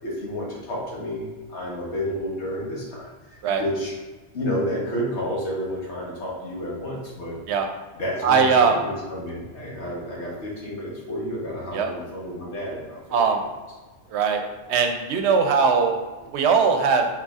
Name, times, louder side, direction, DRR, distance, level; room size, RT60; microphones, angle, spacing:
voice 1, 0.0-3.9 4.3-7.4 7.9-13.2, equal, 75° left, -4 dB, 1.4 m, -30 dB
voice 2, 8.2-8.7 11.7-11.9 13.1-13.4 14.1-14.4 14.7-17.1, right 5 dB, 75° right, 4 dB, 0.8 m, -20 dB
4.4 x 3.9 x 2.4 m, 1.2 s
omnidirectional pair, 1.1 m